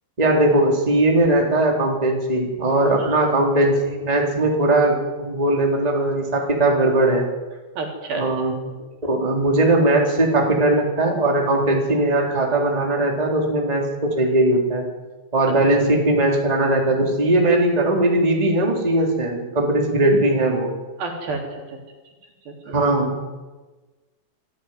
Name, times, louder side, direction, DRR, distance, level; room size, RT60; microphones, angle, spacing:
voice 1, 0.2-7.3 8.1-8.5 9.0-14.8 15.3-20.7 22.7-23.1, right 1 dB, 10° right, 0 dB, 3.6 m, -19 dB
voice 2, 7.8-8.2 21.0-21.4 22.5-23.1, right 3 dB, 60° right, 1 dB, 5.2 m, -30 dB
26.0 x 15.5 x 9.5 m, 1.2 s
omnidirectional pair, 4.9 m